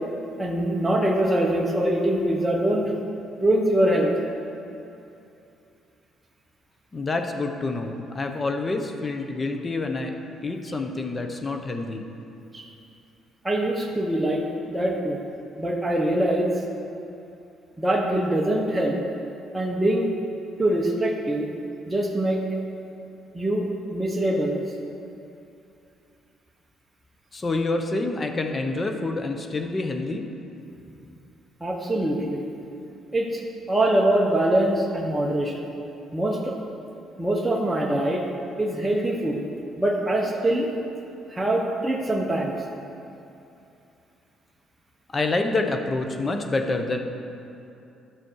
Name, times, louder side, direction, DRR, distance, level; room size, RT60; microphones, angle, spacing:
voice 1, 0.4-2.9 3.4-4.1 12.5-12.6 13.4-15.2 15.6-16.5 17.8-19.0 19.5-20.1 20.6-21.5 21.9-22.4 23.3-24.6 31.6-32.4 33.1-33.4 33.7-35.6 36.1-36.5 37.2-38.2 38.6-39.4 39.8-40.7 41.3-42.6, right 1 dB, 10° right, -2 dB, 1.2 m, -23 dB
voice 2, 6.9-10.1 10.4-12.1 27.3-30.3 45.1-47.0, left 3 dB, 30° left, 5 dB, 1.0 m, -27 dB
12.0 x 6.3 x 4.7 m, 2.8 s
cardioid pair, 90°, 0 cm